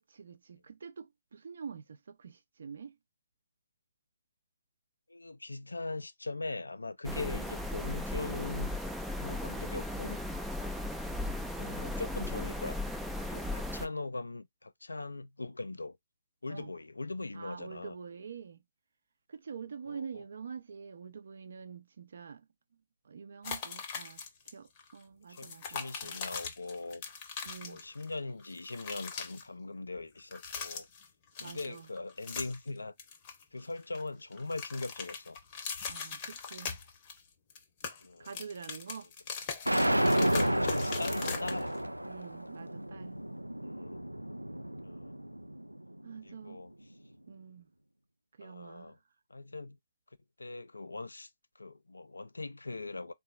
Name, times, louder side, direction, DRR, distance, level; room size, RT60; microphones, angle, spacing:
voice 1, 0.0-2.9 16.5-16.7 17.3-18.6 19.3-22.4 23.0-24.2 24.5-26.2 27.4-27.8 31.4-31.9 35.9-36.8 38.2-39.1 42.0-43.2 46.0-46.6 47.3-47.7 48.4-49.0, right 6 dB, 55° right, 0.7 m, -46 dB
voice 2, 5.1-8.7 9.2-10.2 11.5-12.8 13.3-16.0 16.4-18.0 19.8-20.2 25.3-27.0 27.6-30.9 31.4-32.9 33.5-35.4 38.0-38.4 39.0-39.1 40.0-41.8 43.6-44.0 44.8-45.2 46.2-46.9 48.4-49.0 49.3-49.8 50.4-51.3 51.6-53.1, left 3 dB, 75° left, 0.5 m, -41 dB
sound 1, 7.0-13.9, left 1 dB, ahead, 0.4 m, -36 dB
sound 2, 23.4-24.5 24.8-24.9 25.3-28.1 28.4-29.4 30.2-31.1 31.4-32.7 33.0-34.0 34.3-37.2 37.5-41.8, left 6 dB, 30° left, 0.8 m, -41 dB
sound 3, 39.7-45.8, right 1 dB, 90° right, 0.4 m, -31 dB
3.8 x 2.4 x 4.2 m
figure-of-eight pair, 135°, 0 cm